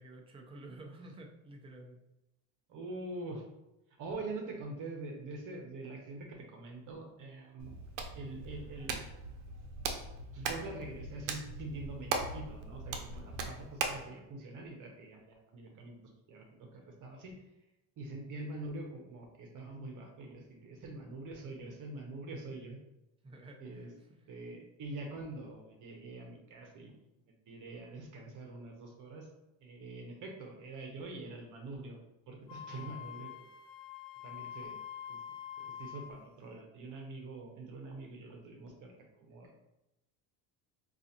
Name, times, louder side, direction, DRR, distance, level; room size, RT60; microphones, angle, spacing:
voice 1, 0.0-2.0 23.2-24.3 37.4-37.8, right 2 dB, 15° right, 1 dB, 0.4 m, -52 dB
voice 2, 2.7-3.4 4.0-7.8 8.1-9.0 10.3-16.0 16.3-16.4 16.8-17.4 18.0-22.8 23.6-23.9 24.3-26.9 27.5-29.3 29.6-32.0 32.3-33.3 34.2-34.8 35.1-35.2 35.6-39.5, right 2 dB, 45° right, 2 dB, 0.9 m, -44 dB
Hands, 7.6-14.1, right 4 dB, 80° right, 0.7 m, -39 dB
Wind instrument woodwind instrument, 32.5-36.2, left 9 dB, 55° left, 0.5 m, -46 dB
4.6 x 2.5 x 2.8 m, 0.93 s
cardioid pair, 130°, 42 cm